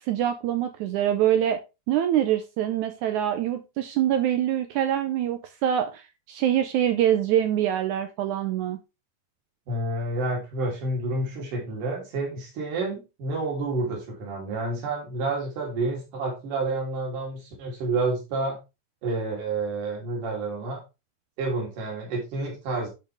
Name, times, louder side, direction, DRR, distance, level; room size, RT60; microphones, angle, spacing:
voice 1, 0.0-1.6 1.9-8.8, right 11 dB, 80° right, 1.8 m, -24 dB
voice 2, 9.7-18.6 19.0-20.8 21.4-22.9, right 2 dB, 65° right, 4.7 m, -29 dB
11.0 x 5.2 x 3.5 m
omnidirectional pair, 4.1 m